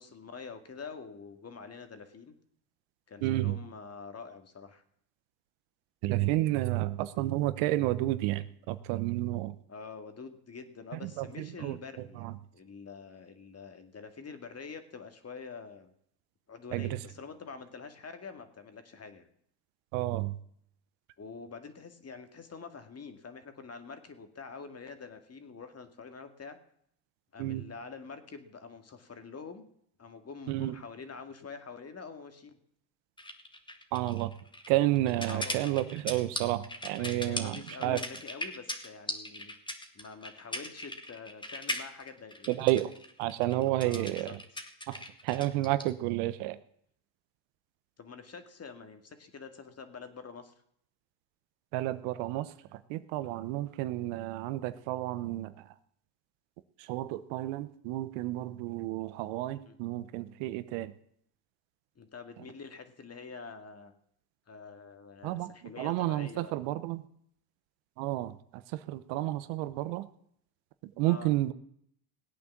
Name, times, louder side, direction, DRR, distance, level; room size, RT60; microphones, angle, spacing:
voice 1, 0.0-2.3 3.1-4.8 9.7-15.9 16.5-19.3 21.2-26.6 27.3-29.7 30.0-32.6 35.3-35.7 37.0-39.5 39.9-42.6 43.8-44.6 48.0-50.5 59.5-59.8 62.0-63.9 64.5-66.5 71.1-71.3, left 5 dB, 30° left, 8 dB, 2.1 m, -46 dB
voice 2, 3.2-3.6 6.0-9.5 11.0-11.8 12.2-12.3 16.7-16.9 19.9-20.4 27.4-27.6 30.5-30.7 33.9-34.3 34.7-38.0 42.5-42.9 43.2-44.3 44.9-46.6 51.7-52.5 52.9-55.5 56.9-60.9 65.2-65.5 65.8-67.0 68.0-68.3 68.7-70.1 71.0-71.5, right 16 dB, 80° right, 13 dB, 1.0 m, -31 dB
sound 1, 33.2-45.9, left 1 dB, 10° left, 2.1 m, -39 dB
17.0 x 8.6 x 7.3 m, 0.70 s
supercardioid pair, 80°, 46 cm